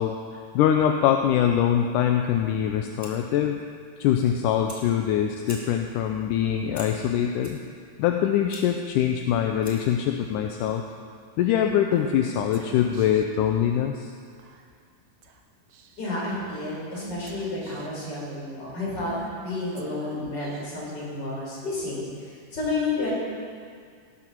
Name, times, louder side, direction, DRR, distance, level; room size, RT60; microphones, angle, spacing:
voice 1, 0.0-3.6 4.0-7.6 8.0-10.8 11.4-14.1, left 9 dB, 80° left, 4 dB, 2.1 m, -23 dB
Fire, 2.8-10.0, equal, 10° left, 1.0 m, -48 dB
Female speech woman speaking / Whispering, 11.9-13.4 14.4-14.8 15.2-15.4 15.7-16.2 16.9-18.0 18.9-20.9, right 2 dB, 85° right, 1.2 m, -44 dB
voice 2, 16.0-19.1 19.4-23.1, left 2 dB, 30° left, -6 dB, 5.3 m, -31 dB
17.5 x 12.5 x 4.6 m, 2.2 s
omnidirectional pair, 3.9 m